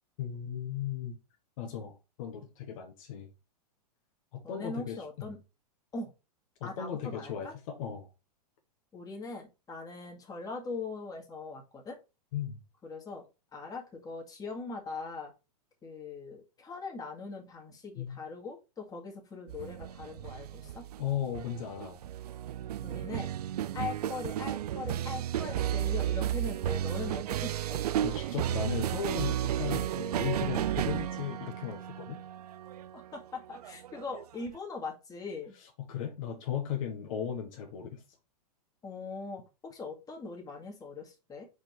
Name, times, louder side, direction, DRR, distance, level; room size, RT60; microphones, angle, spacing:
voice 1, 0.2-1.2 1.6-3.3 4.3-5.3 6.6-8.1 12.3-12.6 18.0-18.2 21.0-22.0 28.0-32.2 35.8-38.0, left 9 dB, 55° left, 1.4 m, -36 dB
voice 2, 4.4-5.4 5.9-6.1 6.6-7.5 8.9-12.0 12.8-13.2 13.5-15.3 15.8-20.8 22.8-23.3 23.7-27.8 32.9-35.5 38.8-41.5, left 4 dB, 20° left, 2.0 m, -41 dB
sound 1, 19.5-34.6, right 11 dB, 70° right, 0.4 m, -33 dB
5.1 x 4.4 x 4.6 m
hypercardioid pair, 110°, 20 cm